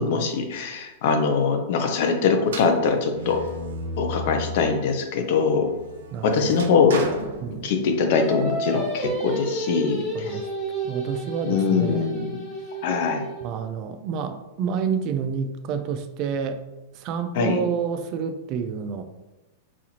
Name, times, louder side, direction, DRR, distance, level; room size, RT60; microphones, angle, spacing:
voice 1, 0.0-3.4 4.0-5.7 6.2-7.0 7.5-10.4 11.4-12.3 12.8-13.2 17.4-17.6, left 5 dB, 60° left, 5 dB, 0.6 m, -22 dB
sound 1, 2.4-4.9 5.3-8.1, right 1 dB, 85° right, 0.6 m, -35 dB
voice 2, 6.1-6.6 7.4-7.7 10.1-10.5 10.8-12.2 13.4-16.6 17.0-19.0, right 6 dB, 40° right, 8 dB, 0.3 m, -29 dB
Singing, 8.1-13.5, right 2 dB, ahead, 1.5 m, -31 dB
4.1 x 2.4 x 2.9 m, 1.0 s
hypercardioid pair, 135°, 0 cm